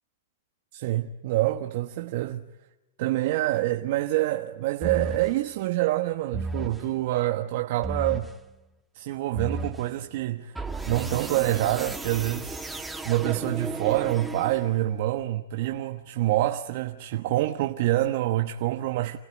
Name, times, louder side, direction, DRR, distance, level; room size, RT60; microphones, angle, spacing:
voice 1, 0.7-2.4 3.0-8.3 8.9-10.6 10.9-12.8 13.0-19.2, right 15 dB, 55° right, 1.2 m, -26 dB
sound 1, 4.8-5.4 6.3-6.9 7.8-8.4 9.3-9.9 10.5-14.9, right 2 dB, 5° right, 1.7 m, -34 dB
28.0 x 16.5 x 9.6 m
hypercardioid pair, 130°, 0 cm